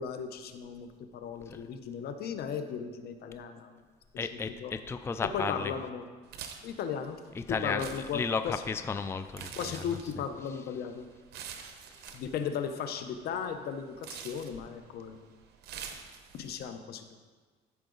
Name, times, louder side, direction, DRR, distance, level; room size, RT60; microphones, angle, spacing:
voice 1, 0.0-3.8 4.5-4.7 5.2-6.0 6.6-7.2 7.5-8.6 9.6-11.0 12.1-15.2 16.3-17.1, left 7 dB, 70° left, 8 dB, 0.8 m, -36 dB
voice 2, 4.2-5.7 7.4-9.8 11.5-11.6, left 5 dB, 15° left, 10 dB, 0.4 m, -34 dB
sound 1, 6.2-16.6, right 7 dB, 70° right, 0.9 m, -48 dB
14.0 x 4.7 x 3.9 m, 1.4 s
cardioid pair, 110°, 17 cm